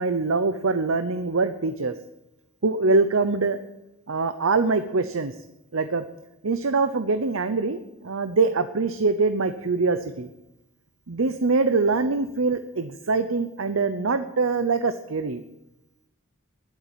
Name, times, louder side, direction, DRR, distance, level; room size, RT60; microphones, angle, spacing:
voice 1, 0.0-1.9 2.6-3.6 4.1-5.3 5.7-6.0 6.4-10.3 11.1-15.4, right 3 dB, 85° right, 10 dB, 0.8 m, -24 dB
12.5 x 11.5 x 9.1 m, 0.92 s
head